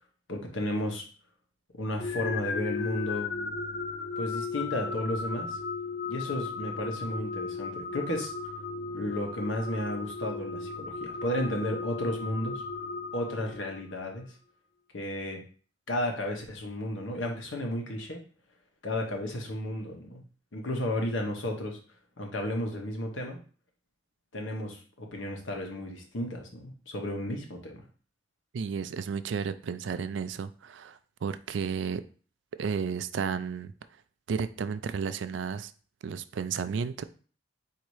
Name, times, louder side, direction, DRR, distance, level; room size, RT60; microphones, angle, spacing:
voice 1, 0.3-1.0 1.7-3.3 4.2-5.6 6.1-8.3 8.9-12.6 13.1-14.3 14.9-15.4 15.9-18.2 18.8-20.2 20.5-21.8 22.2-23.4 24.3-27.8, left 1 dB, 90° left, 1.1 m, -33 dB
sound 1, 2.0-14.0, left 4 dB, 55° left, 0.4 m, -36 dB
voice 2, 28.5-32.0 32.6-33.7 34.3-35.7 36.0-37.0, right 6 dB, 70° right, 0.3 m, -32 dB
4.1 x 2.8 x 4.7 m
head